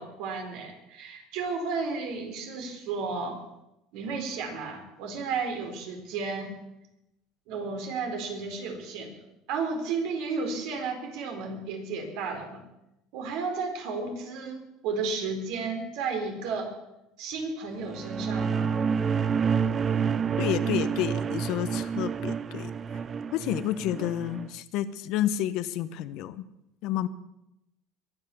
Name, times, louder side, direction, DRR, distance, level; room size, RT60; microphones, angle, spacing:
voice 1, 0.0-3.4 3.9-6.5 7.5-9.2 9.5-12.6 13.1-16.7 17.2-18.9, right 4 dB, 70° right, 4 dB, 4.1 m, -33 dB
sound 1, 17.8-24.5, right 6 dB, 30° right, 0.5 m, -28 dB
voice 2, 20.4-22.7 23.3-26.4 26.8-27.1, left 12 dB, 65° left, 13 dB, 1.0 m, -30 dB
22.0 x 9.3 x 7.0 m, 0.88 s
cardioid pair, 130°, 0 cm